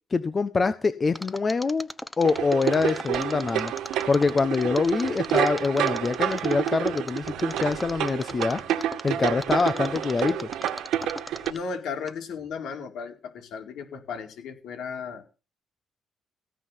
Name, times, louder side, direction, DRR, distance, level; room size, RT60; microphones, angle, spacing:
voice 1, 0.1-1.9 2.2-3.7 4.1-8.6 9.0-10.5, left 4 dB, 35° left, 11 dB, 1.1 m, -25 dB
Mechanisms, 1.2-11.7 12.1-12.2, left 1 dB, 5° left, 1.1 m, -39 dB
sound 1, 2.2-11.5, right 11 dB, 85° right, 2.0 m, -29 dB
voice 2, 11.5-15.2, left 5 dB, 75° left, 3 dB, 4.6 m, -35 dB
17.0 x 5.8 x 9.7 m, 0.32 s
cardioid pair, 90°, 0 cm